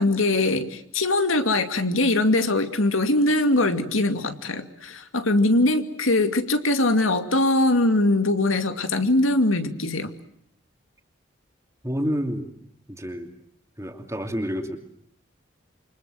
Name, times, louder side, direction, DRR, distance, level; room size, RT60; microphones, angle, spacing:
voice 1, 0.0-10.1, left 2 dB, 90° left, 9 dB, 2.5 m, -22 dB
voice 2, 11.8-12.5 12.9-13.3 13.8-14.8, equal, 15° right, 6 dB, 2.8 m, -29 dB
28.5 x 26.0 x 7.8 m, 0.68 s
head